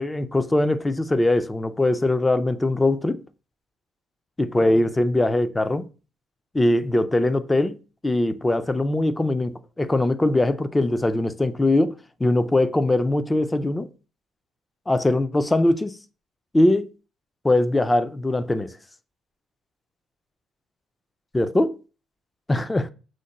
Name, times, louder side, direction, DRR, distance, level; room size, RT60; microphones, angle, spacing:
voice 1, 0.0-3.2 4.4-5.9 6.5-7.8 8.0-11.9 12.2-13.9 14.9-16.0 16.5-16.9 17.4-18.7 21.3-21.7 22.5-22.9, left 1 dB, 15° left, 0.4 m, -21 dB
6.3 x 2.1 x 4.0 m
cardioid pair, 95°, 0 cm